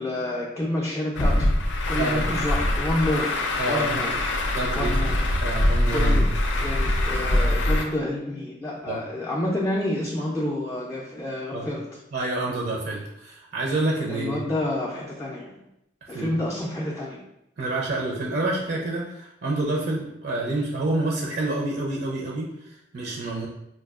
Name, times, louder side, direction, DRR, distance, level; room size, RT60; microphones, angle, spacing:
voice 1, 0.0-1.6 1.9-3.4 3.6-4.2 4.7-5.2 5.9-6.3 6.6-12.0 14.1-15.6 16.1-17.2, left 1 dB, 15° left, -4 dB, 0.4 m, -29 dB
Truck, 1.1-7.8, left 1 dB, 80° left, 0.5 m, -23 dB
voice 2, 2.0-2.3 3.6-4.1 4.5-4.9 5.4-6.3 8.9-9.0 11.5-11.7 12.1-14.4 16.1-16.4 17.6-23.5, right 2 dB, 60° right, -1 dB, 0.5 m, -28 dB
4.4 x 2.3 x 2.3 m, 0.84 s
head